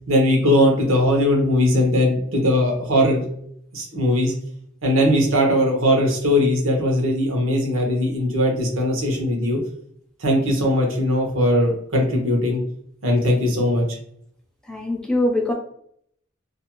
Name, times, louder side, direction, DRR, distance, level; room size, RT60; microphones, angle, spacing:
voice 1, 0.1-3.3 3.7-4.3 4.8-9.6 10.2-12.6 13.0-13.8, left 1 dB, 85° right, 0 dB, 0.9 m, -19 dB
voice 2, 14.7-15.5, left 1 dB, 5° left, -1 dB, 0.4 m, -22 dB
2.5 x 2.2 x 2.9 m, 0.66 s
head